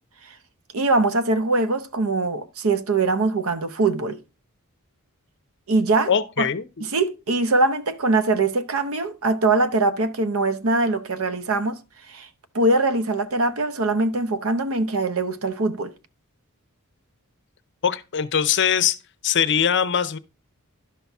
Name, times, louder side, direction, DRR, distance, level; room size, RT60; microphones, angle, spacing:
voice 1, 0.7-4.2 5.7-6.1 6.4-6.5 6.9-11.8 12.1-12.3 12.5-15.9, right 2 dB, 65° right, 0.8 m, -22 dB
voice 2, 6.1-6.9 17.8-19.0 19.2-20.2, left 8 dB, 55° left, 0.6 m, -22 dB
11.5 x 5.7 x 3.5 m
head